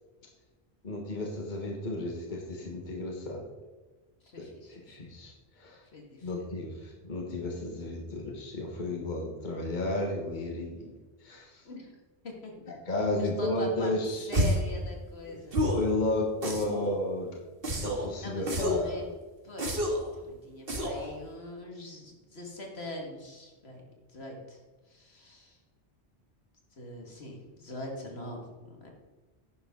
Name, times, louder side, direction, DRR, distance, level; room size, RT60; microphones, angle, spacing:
voice 1, 0.8-3.4 4.4-5.8 6.2-10.9 11.2-11.6 12.7-14.3 15.6-17.3 17.8-19.0, left 1 dB, 45° left, 0 dB, 1.6 m, -33 dB
voice 2, 4.2-5.2 5.9-6.3 11.6-11.9 12.2-12.5 13.2-15.6 18.2-19.1 19.4-23.8 24.1-24.6 24.9-25.6 26.7-28.4 28.7-28.9, left 1 dB, 70° left, 1 dB, 2.4 m, -42 dB
sound 1, 14.3-14.7 15.5-15.9 16.4-16.9 17.6-18.1 18.5-18.9 19.6-20.1 20.7-21.1, equal, 60° right, 1.9 m, -29 dB
11.5 x 9.7 x 3.9 m, 1.3 s
omnidirectional pair, 1.1 m